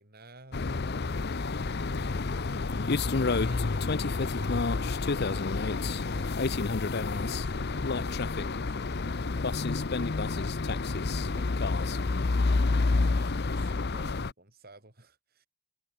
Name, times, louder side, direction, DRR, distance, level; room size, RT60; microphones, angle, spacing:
voice 1, 0.0-2.8 3.3-6.3 7.1-12.2 13.0-15.5, right 2 dB, 45° right, 5.1 m, -54 dB
sound 1, 0.5-14.3, left 3 dB, 50° left, 0.7 m, -29 dB
head